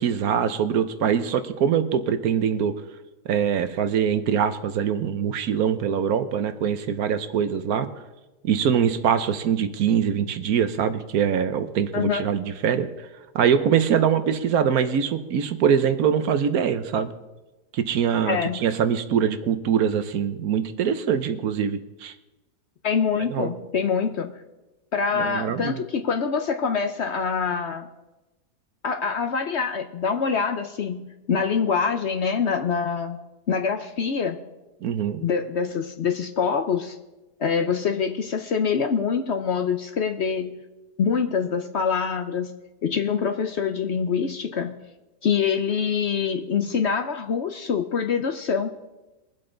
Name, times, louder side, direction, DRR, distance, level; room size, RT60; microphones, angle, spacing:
voice 1, 0.0-2.7 3.2-7.9 8.4-13.1 13.3-17.1 17.7-22.1 23.3-23.5 25.1-25.8 34.8-35.2, right 8 dB, 70° right, 10 dB, 1.2 m, -23 dB
voice 2, 18.2-18.7 22.8-24.3 24.9-27.9 28.8-33.2 33.5-34.5 35.2-37.0 37.4-40.6 41.0-42.5 42.8-44.8 45.2-48.7, left 6 dB, 55° left, 6 dB, 0.8 m, -25 dB
22.0 x 7.8 x 3.9 m, 1.1 s
omnidirectional pair, 1.7 m